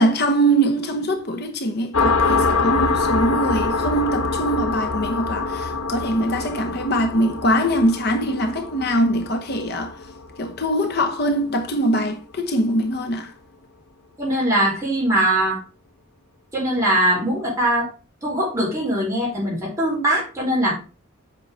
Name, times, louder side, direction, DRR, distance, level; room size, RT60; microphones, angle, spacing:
voice 1, 0.0-10.0 10.4-13.3, right 1 dB, 50° left, 0.9 m, -22 dB
sound 1, 1.9-11.2, left 3 dB, 85° left, 1.0 m, -24 dB
voice 2, 14.2-15.6 16.5-17.9 18.2-20.7, right 1 dB, 15° right, 4.9 m, -21 dB
8.3 x 5.5 x 4.9 m
head